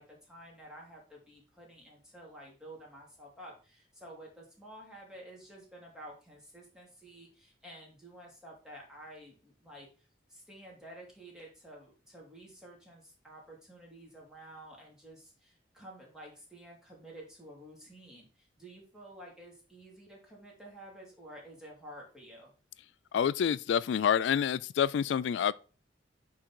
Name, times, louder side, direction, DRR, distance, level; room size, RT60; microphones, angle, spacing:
voice 1, 0.0-9.9 10.3-22.5, right 1 dB, 5° right, 2.9 m, -51 dB
voice 2, 23.1-25.5, left 8 dB, 90° left, 0.3 m, -28 dB
8.6 x 3.9 x 4.5 m
head